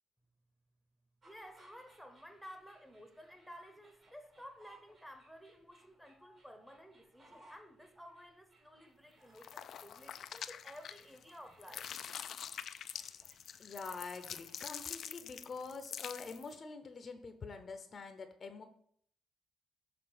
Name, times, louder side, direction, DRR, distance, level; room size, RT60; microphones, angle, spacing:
voice 1, 1.2-11.9, equal, 5° right, 1.0 m, -54 dB
sound 1, 1.2-14.9, right 2 dB, 50° right, 2.7 m, -65 dB
sound 2, 9.3-11.3 11.6-16.5, left 8 dB, 65° left, 0.3 m, -46 dB
voice 2, 13.6-18.6, left 4 dB, 45° left, 0.7 m, -46 dB
6.8 x 3.3 x 5.0 m
cardioid pair, 90°, 0 cm